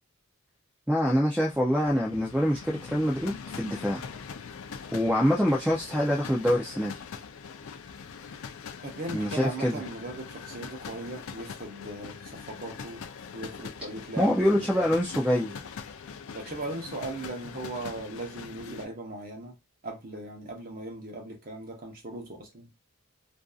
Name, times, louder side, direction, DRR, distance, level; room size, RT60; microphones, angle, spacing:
voice 1, 0.9-4.1 4.9-6.9 9.1-9.8 14.2-15.6, equal, 5° right, 0.4 m, -25 dB
sound 1, 1.4-18.9, left 6 dB, 75° left, 0.4 m, -42 dB
voice 2, 8.8-13.1 13.3-14.7 16.3-19.6 19.8-22.7, right 2 dB, 40° right, 0.8 m, -38 dB
2.6 x 2.4 x 2.3 m
head